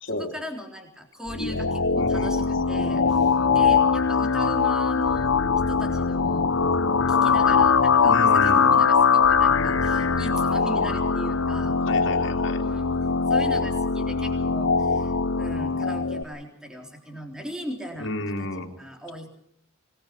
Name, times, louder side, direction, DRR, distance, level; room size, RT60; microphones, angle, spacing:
voice 1, 0.2-5.3 5.7-6.5 7.1-11.8 12.6-13.0 13.3-18.1 18.8-19.3, equal, 5° right, 2 dB, 3.7 m, -38 dB
sound 1, 1.3-16.2, left 5 dB, 85° left, 1.0 m, -21 dB
voice 2, 1.9-2.6 8.0-8.7 11.9-12.6 18.0-18.7, left 1 dB, 65° left, 3 dB, 2.9 m, -31 dB
25.5 x 20.0 x 6.0 m, 0.67 s
head